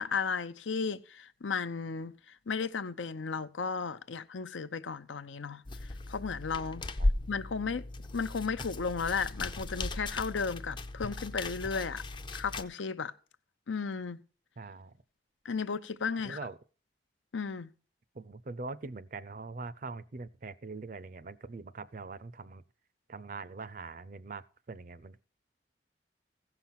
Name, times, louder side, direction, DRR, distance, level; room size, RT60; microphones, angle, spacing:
voice 1, 0.0-5.6 6.1-6.9 7.3-7.9 8.1-12.0 12.3-13.1 13.7-14.2 15.4-16.4 17.3-17.7, left 5 dB, 85° left, 0.7 m, -34 dB
sound 1, 5.7-12.6, left 2 dB, 25° left, 0.5 m, -36 dB
voice 2, 14.6-14.9 16.2-16.6 18.1-22.6 23.1-25.2, right 3 dB, 45° right, 0.5 m, -43 dB
15.5 x 5.9 x 5.7 m
head